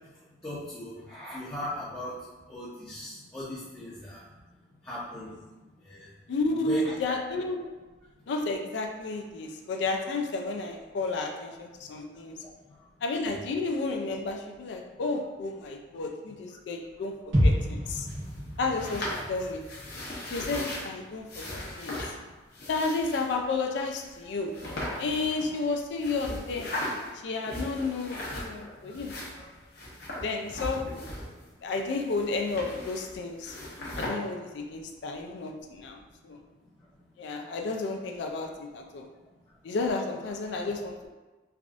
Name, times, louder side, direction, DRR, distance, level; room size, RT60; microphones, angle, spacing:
voice 1, 0.4-2.2 2.5-4.2 4.8-5.3 5.9-6.1 6.4-6.9, left 1 dB, 15° left, -11 dB, 0.5 m, -37 dB
voice 2, 6.3-7.6 8.3-12.3 13.0-18.1 18.6-19.6 20.3-22.0 22.7-24.5 25.0-26.8 27.2-29.2 30.2-31.1 31.6-33.6 33.9-36.0 36.2-36.4 37.2-39.1 39.6-41.1, left 3 dB, 70° left, 3 dB, 0.3 m, -32 dB
sound 1, 17.3-21.3 21.6-21.7, equal, 85° right, 1.4 m, -29 dB
sound 2, 18.1-20.9 21.3-22.1 22.5-23.3 24.0-24.1 24.5-25.7 26.0-27.1 27.4-28.6 28.9-31.5 31.8-33.1 33.4-34.1, left 1 dB, 55° left, 0.7 m, -38 dB
3.4 x 2.4 x 2.4 m, 1.2 s
head